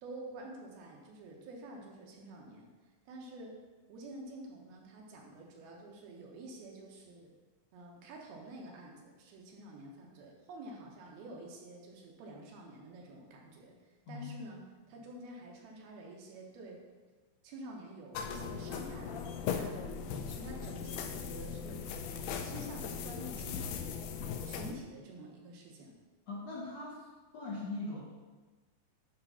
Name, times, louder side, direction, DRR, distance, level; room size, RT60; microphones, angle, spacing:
voice 1, 0.0-2.7 3.1-7.3 7.7-14.6 14.9-16.8 17.4-21.8 22.4-24.0 24.4-26.0, right 1 dB, 85° right, -1 dB, 3.1 m, -49 dB
sound 1, 18.1-24.7, left 6 dB, 90° left, 1.8 m, -39 dB
voice 2, 26.3-28.0, left 2 dB, 65° left, -5 dB, 1.7 m, -41 dB
9.8 x 3.4 x 5.6 m, 1.3 s
omnidirectional pair, 4.2 m